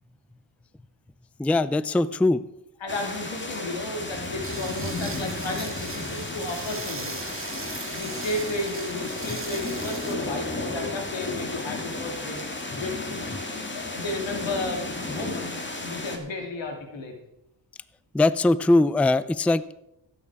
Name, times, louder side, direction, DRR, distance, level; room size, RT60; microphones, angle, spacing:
voice 1, 1.4-2.4 18.1-19.8, left 2 dB, 5° left, 16 dB, 0.3 m, -21 dB
voice 2, 2.8-7.2 7.9-12.4 12.7-13.3 13.7-17.1, left 2 dB, 90° left, 3 dB, 2.5 m, -33 dB
sound 1, 2.9-16.2, left 2 dB, 25° left, 2.0 m, -33 dB
sound 2, 4.4-10.1, right 5 dB, 30° right, 1.0 m, -40 dB
15.5 x 8.7 x 4.7 m, 0.87 s
cardioid pair, 80°, 44 cm